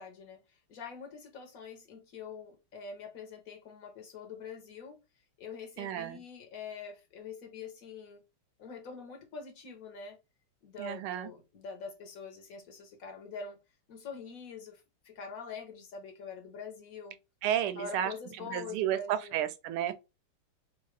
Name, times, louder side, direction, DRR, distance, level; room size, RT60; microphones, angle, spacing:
voice 1, 0.0-5.0 5.4-8.2 8.6-10.2 10.6-13.6 13.9-17.2 17.6-19.4, left 5 dB, 60° left, 0.9 m, -45 dB
voice 2, 5.8-6.2 10.8-11.3 17.4-18.1 18.5-20.0, right 11 dB, 85° right, 1.5 m, -32 dB
3.7 x 2.4 x 3.2 m
omnidirectional pair, 2.4 m